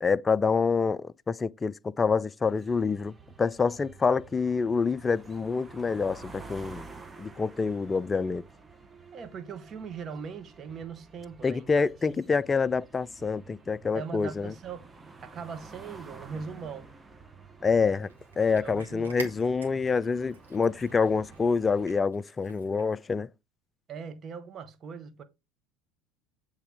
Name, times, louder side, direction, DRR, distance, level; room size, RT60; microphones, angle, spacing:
voice 1, 0.0-6.9 7.2-8.4 11.4-14.5 17.6-18.1 18.4-23.3, left 5 dB, 20° left, 0.3 m, -27 dB
sound 1, 2.4-22.0, right 4 dB, 15° right, 0.9 m, -50 dB
voice 2, 9.1-11.9 13.9-14.9 15.2-16.9 17.8-18.0 18.5-19.2 23.9-25.2, right 6 dB, 35° right, 1.0 m, -40 dB
Cat, 17.9-23.1, right 4 dB, 85° right, 1.6 m, -48 dB
8.1 x 3.4 x 3.5 m
figure-of-eight pair, 70°, 0 cm